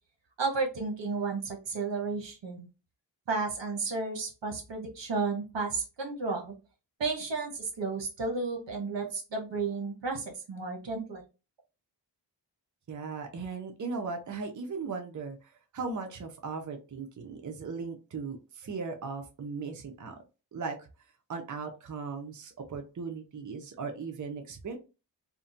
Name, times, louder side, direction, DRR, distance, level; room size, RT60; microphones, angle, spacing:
voice 1, 0.4-2.7 3.3-6.5 7.0-11.2, right 4 dB, 80° right, 1 dB, 0.9 m, -33 dB
voice 2, 12.9-20.2 20.5-20.8 21.3-24.8, right 4 dB, 45° right, 4 dB, 0.6 m, -38 dB
2.6 x 2.1 x 2.5 m, 0.31 s
wide cardioid pair, 55°, 43 cm